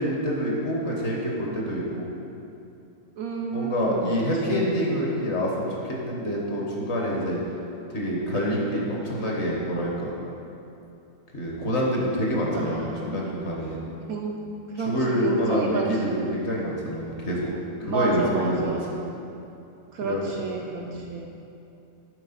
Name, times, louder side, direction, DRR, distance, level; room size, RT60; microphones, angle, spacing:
voice 1, 0.0-2.1 3.5-7.4 7.9-10.1 11.3-13.8 14.8-17.5 17.8-19.0 20.0-20.2 20.8-21.1, equal, 45° left, -3 dB, 1.2 m, -27 dB
voice 2, 3.2-4.1 4.5-4.6 12.5-13.2 14.1-14.5 14.7-14.9 15.2-16.3 17.8-19.0 19.9-21.3, right 4 dB, 70° right, 0 dB, 0.9 m, -30 dB
7.7 x 4.4 x 5.7 m, 2.7 s
omnidirectional pair, 1.8 m